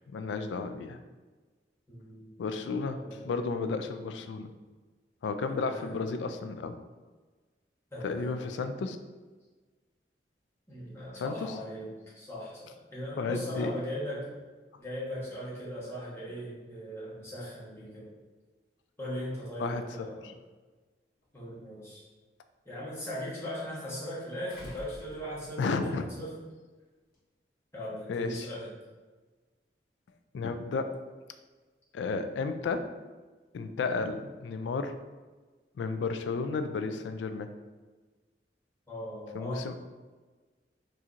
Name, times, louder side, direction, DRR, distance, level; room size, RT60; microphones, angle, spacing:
voice 1, 0.1-1.0 2.4-4.5 5.2-6.8 8.0-9.0 11.1-11.6 13.2-13.7 19.6-20.3 25.6-26.1 28.1-28.5 30.3-30.9 31.9-32.9 33.5-34.9 35.8-37.5 39.3-39.7, left 4 dB, 85° left, 9 dB, 0.3 m, -33 dB
voice 2, 1.9-2.3 2.9-3.3 5.5-6.0 7.9-8.4 10.7-11.9 12.1-14.3 14.8-18.1 19.0-20.3 21.3-22.0 22.6-26.4 27.7-28.7 38.9-39.7, equal, 15° left, -8 dB, 1.1 m, -39 dB
sound 1, 21.2-21.3 24.5-25.8 27.1-27.2, equal, 55° left, 1.1 m, -48 dB
4.2 x 2.6 x 2.4 m, 1.3 s
head